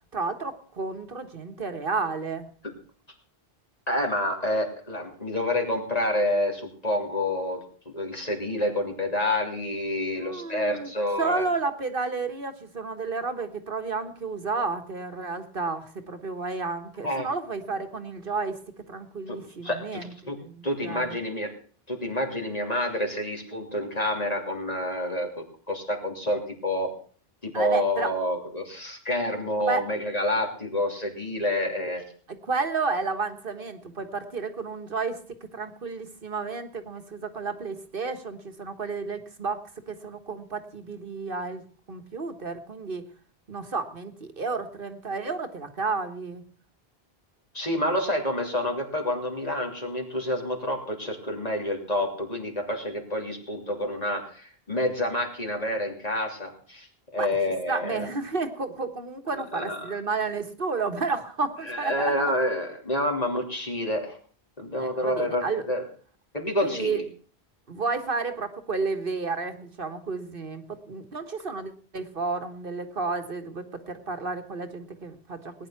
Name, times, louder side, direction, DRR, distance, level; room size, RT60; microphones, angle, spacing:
voice 1, 0.1-2.5 10.2-10.9 11.2-18.6 18.9-21.2 27.5-28.1 29.7-29.8 32.4-35.2 35.5-41.6 41.9-43.0 43.5-46.4 57.1-57.3 57.7-62.3 64.8-65.7 66.6-67.1 67.7-75.5, right 4 dB, 55° right, 8 dB, 1.7 m, -31 dB
voice 2, 3.9-7.6 7.8-11.5 17.0-17.3 19.3-19.4 19.6-20.4 20.6-21.5 21.9-26.9 27.4-32.0 47.5-56.9 57.1-58.1 59.5-59.9 61.6-64.2 64.6-65.8 66.3-67.0, left 1 dB, 35° left, 2 dB, 3.3 m, -28 dB
19.0 x 10.0 x 5.9 m, 0.44 s
omnidirectional pair, 1.1 m